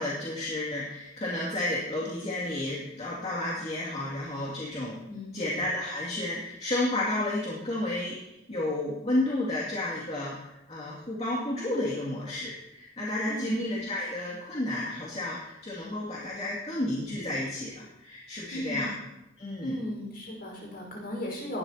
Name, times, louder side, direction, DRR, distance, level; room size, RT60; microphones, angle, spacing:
voice 1, 0.0-5.0 5.3-18.9 19.4-19.8, left 1 dB, 35° left, -6 dB, 2.5 m, -31 dB
voice 2, 5.1-5.5 13.3-13.6 18.5-18.9 19.6-21.6, left 1 dB, 50° left, -1 dB, 5.0 m, -36 dB
19.0 x 12.0 x 2.9 m, 0.89 s
head